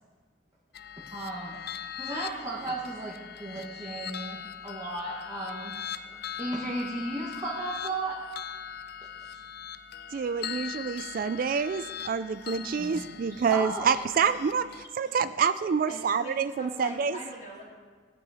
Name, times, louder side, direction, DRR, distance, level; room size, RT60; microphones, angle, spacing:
sound 1, 0.7-14.8, left 8 dB, 55° left, 0.5 m, -41 dB
voice 1, 1.1-1.6 2.0-5.7 6.4-8.3 9.2-9.4 12.5-13.0 13.3-13.9, right 2 dB, 20° right, -5 dB, 1.2 m, -35 dB
voice 2, 10.1-14.7 14.9-17.2, right 6 dB, 45° right, 13 dB, 0.3 m, -27 dB
voice 3, 15.9-17.6, equal, 35° left, -10 dB, 2.4 m, -42 dB
16.5 x 8.5 x 4.8 m, 1.5 s
head